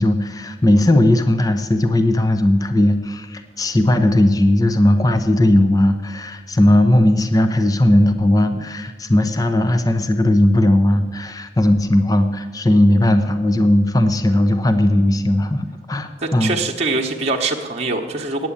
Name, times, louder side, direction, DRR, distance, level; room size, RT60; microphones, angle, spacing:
voice 1, 0.0-16.6, left 1 dB, 20° left, 9 dB, 0.6 m, -17 dB
voice 2, 16.2-18.5, right 3 dB, 35° right, 1 dB, 1.0 m, -23 dB
9.3 x 8.4 x 8.6 m, 1.4 s
head